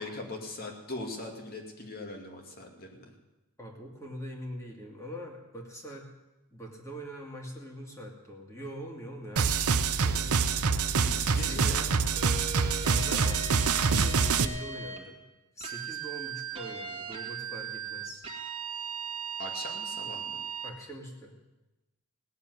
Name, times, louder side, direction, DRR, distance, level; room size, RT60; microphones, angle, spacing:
voice 1, 0.0-3.1 11.0-12.0 19.4-20.4, left 2 dB, 45° left, 2 dB, 2.4 m, -41 dB
voice 2, 3.6-6.1 6.5-10.5 11.0-11.9 12.7-15.2 15.6-18.2 20.6-21.4, equal, 15° left, 0 dB, 2.4 m, -43 dB
sound 1, 9.4-14.4, right 5 dB, 80° right, 0.7 m, -26 dB
sound 2, 12.2-15.0 15.6-20.8, right 6 dB, 25° right, 2.0 m, -38 dB
17.5 x 7.4 x 9.5 m, 1.1 s
head